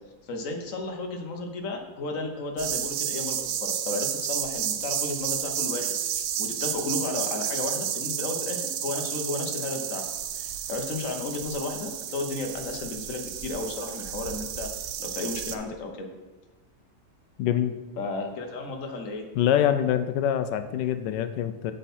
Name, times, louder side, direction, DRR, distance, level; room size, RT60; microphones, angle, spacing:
voice 1, 0.3-10.0 10.3-16.1 18.0-19.2, left 3 dB, 55° left, 3 dB, 1.4 m, -33 dB
sound 1, 2.6-15.5, right 9 dB, 65° right, 0.9 m, -31 dB
voice 2, 17.4-17.8 19.4-21.7, left 10 dB, 90° left, 10 dB, 1.2 m, -25 dB
8.3 x 7.4 x 4.3 m, 1.2 s
omnidirectional pair, 1.8 m